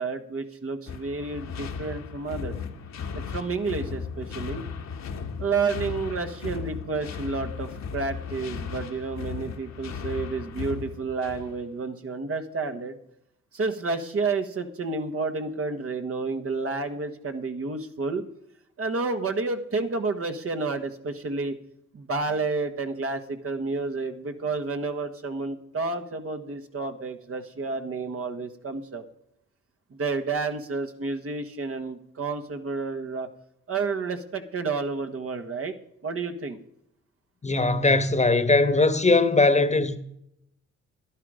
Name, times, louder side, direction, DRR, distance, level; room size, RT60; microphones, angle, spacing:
voice 1, 0.0-2.6 3.1-4.6 5.4-13.0 13.5-18.2 18.8-21.5 21.9-29.0 29.9-33.3 33.7-35.7 36.0-36.6, right 4 dB, 50° right, 1.5 m, -30 dB
sound 1, 0.9-11.6, left 6 dB, 65° left, 1.5 m, -36 dB
voice 2, 37.4-40.0, left 3 dB, 25° left, 1.3 m, -20 dB
11.0 x 10.5 x 5.0 m
supercardioid pair, 55°, 30 cm